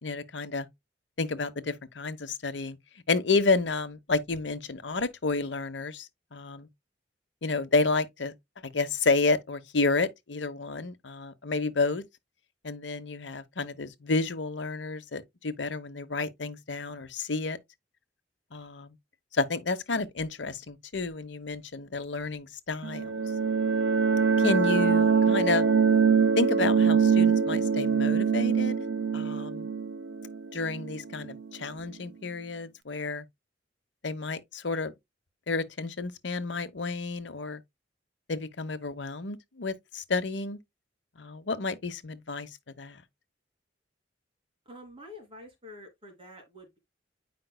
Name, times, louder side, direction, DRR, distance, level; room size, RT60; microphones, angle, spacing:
voice 1, 0.0-0.7 1.2-2.8 3.1-6.7 7.4-8.3 8.6-12.0 12.6-17.6 18.5-19.0 19.3-23.1 24.4-25.7 26.4-28.7 29.1-29.7 30.5-33.2 34.0-34.9 35.5-37.6 38.3-40.6 41.2-42.5 42.8-43.0, left 3 dB, 80° left, 0.9 m, -30 dB
sound 1, 22.8-31.4, right 6 dB, 90° right, 0.5 m, -24 dB
voice 2, 44.7-46.8, left 1 dB, 30° right, 2.7 m, -47 dB
9.1 x 5.2 x 2.2 m
head